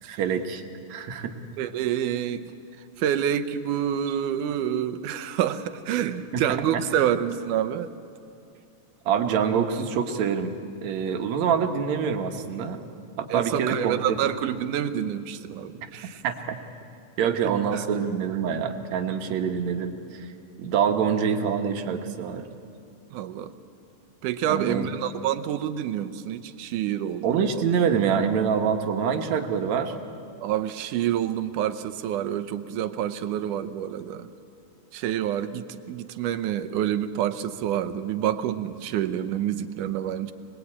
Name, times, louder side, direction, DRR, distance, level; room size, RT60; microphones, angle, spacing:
voice 1, 0.0-0.6 0.9-1.3 6.3-6.4 6.7-6.8 9.1-10.5 10.8-12.8 13.2-14.2 16.2-16.6 17.2-20.3 20.6-22.5 24.5-24.9 27.2-29.9, right 7 dB, 65° right, 5 dB, 2.5 m, -25 dB
voice 2, 1.6-2.5 3.0-7.9 13.3-16.2 17.7-17.8 23.1-23.5 24.2-27.6 30.4-34.3 34.9-40.3, right 10 dB, 85° right, 11 dB, 2.4 m, -28 dB
25.0 x 20.5 x 8.6 m, 2.5 s
omnidirectional pair, 3.6 m